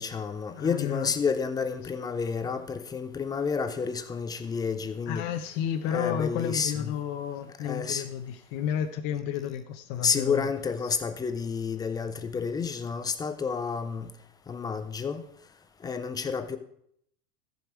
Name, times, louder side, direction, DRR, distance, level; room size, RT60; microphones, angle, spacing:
voice 1, 0.0-5.3 5.9-7.0 7.6-8.1 10.0-14.1 14.5-15.2 15.8-16.6, left 5 dB, 10° left, 10 dB, 0.3 m, -30 dB
voice 2, 0.5-1.1 5.1-10.5, left 9 dB, 45° left, 5 dB, 0.8 m, -31 dB
14.5 x 5.5 x 4.5 m, 0.70 s
hypercardioid pair, 115°, 41 cm